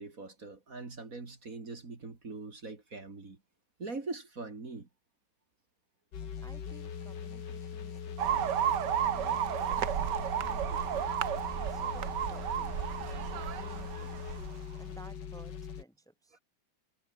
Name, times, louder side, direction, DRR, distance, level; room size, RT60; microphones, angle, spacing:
voice 1, 0.0-3.4 3.8-4.9, right 3 dB, 45° right, 3.2 m, -42 dB
sound 1, 6.1-15.8, left 7 dB, 65° left, 2.3 m, -41 dB
voice 2, 6.4-8.0 9.0-11.1 11.5-12.8 13.2-14.3 14.8-16.4, right 1 dB, ahead, 2.6 m, -56 dB
sound 2, 8.2-14.6, right 10 dB, 65° right, 1.6 m, -32 dB
omnidirectional pair, 2.0 m